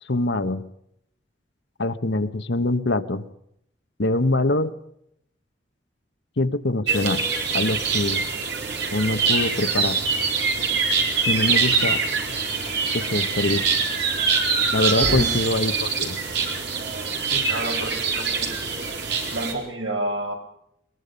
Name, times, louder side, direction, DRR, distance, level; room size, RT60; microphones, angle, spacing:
voice 1, 0.1-0.6 1.8-3.2 4.0-4.7 6.4-7.2 7.5-8.3 8.9-10.0 11.2-12.0 12.9-13.6 14.7-16.2, left 2 dB, 60° left, 10 dB, 1.2 m, -24 dB
sound 1, 6.9-19.5, right 5 dB, 60° right, 4.3 m, -24 dB
sound 2, 12.1-15.7, right 2 dB, 40° right, 6.2 m, -32 dB
voice 2, 15.0-15.4 17.3-18.6 19.3-20.3, right 1 dB, 80° right, 2 dB, 5.5 m, -30 dB
22.5 x 22.0 x 5.4 m, 0.75 s
head